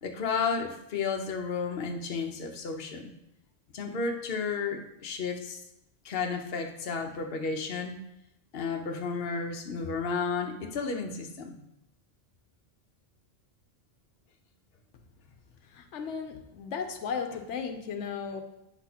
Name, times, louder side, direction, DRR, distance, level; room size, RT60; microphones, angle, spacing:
voice 1, 0.0-3.1 3.7-5.6 6.0-8.0 8.5-11.6, left 5 dB, 60° left, 3 dB, 1.0 m, -32 dB
voice 2, 15.6-18.4, left 6 dB, 85° left, 6 dB, 1.0 m, -35 dB
9.0 x 6.0 x 2.8 m, 0.85 s
omnidirectional pair, 1.2 m